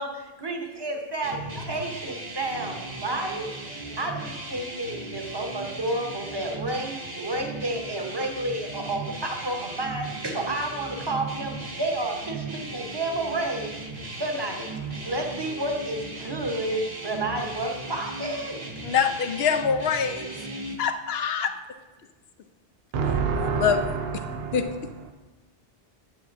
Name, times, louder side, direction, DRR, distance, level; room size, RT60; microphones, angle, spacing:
voice 1, 0.0-13.8 14.2-18.6, right 1 dB, 25° right, 3 dB, 0.9 m, -31 dB
sound 1, 1.2-20.8, right 2 dB, 45° right, 1.1 m, -37 dB
voice 2, 18.8-20.3 20.8-21.6 23.4-23.8 24.5-24.7, left 7 dB, 75° left, 8 dB, 0.9 m, -24 dB
voice 3, 22.9-24.8, right 5 dB, 75° right, 4 dB, 0.9 m, -27 dB
10.5 x 8.6 x 2.6 m, 1.1 s
omnidirectional pair, 1.0 m